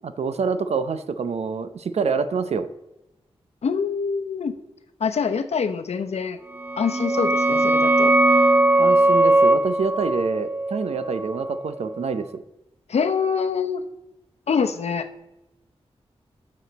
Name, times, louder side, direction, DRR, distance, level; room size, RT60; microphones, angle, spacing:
voice 1, 0.0-2.7 8.8-12.4, right 5 dB, 85° right, 11 dB, 0.7 m, -26 dB
voice 2, 3.6-4.5 5.0-6.4 6.8-8.1 12.9-13.8 14.5-15.1, left 6 dB, 85° left, 8 dB, 0.8 m, -25 dB
sound 1, 6.6-12.0, right 2 dB, 20° right, 0.4 m, -20 dB
12.5 x 6.5 x 4.1 m, 0.96 s
wide cardioid pair, 145°, 11 cm